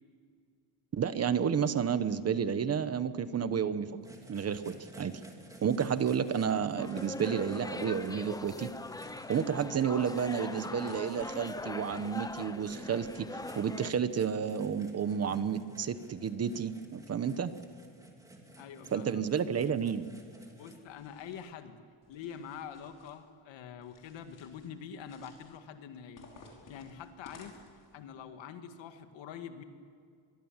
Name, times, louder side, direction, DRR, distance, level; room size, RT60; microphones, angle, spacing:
voice 1, 0.9-3.9 4.3-5.2 5.6-8.7 9.3-17.5 18.9-20.1, right 7 dB, 35° right, 12 dB, 1.0 m, -31 dB
Box of Cheez-its, 4.0-20.8, right 1 dB, 5° right, 2.9 m, -54 dB
sound 1, 6.8-13.9, left 2 dB, 10° left, 0.5 m, -41 dB
voice 2, 18.6-19.2 20.6-27.6 27.9-29.6, left 8 dB, 75° left, 7 dB, 1.9 m, -46 dB
sound 2, 20.9-21.5 22.0-23.2 23.8-24.7 25.0-25.6 26.2-27.9, left 3 dB, 45° left, 5.3 m, -56 dB
25.0 x 23.5 x 7.3 m, 2.3 s
cardioid pair, 170°, 45 cm